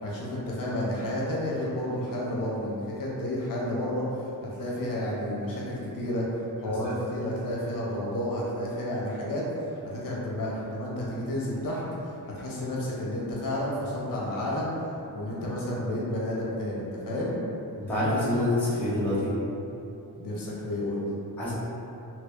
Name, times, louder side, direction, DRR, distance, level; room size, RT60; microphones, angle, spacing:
voice 1, 0.0-4.2 4.6-6.2 6.6-14.7 15.1-17.4 20.1-21.1, left 1 dB, 55° left, -5 dB, 0.8 m, -31 dB
voice 2, 17.9-19.3 21.4-21.5, left 1 dB, 5° left, -11 dB, 0.5 m, -26 dB
2.9 x 2.6 x 3.5 m, 2.9 s
wide cardioid pair, 180°, 39 cm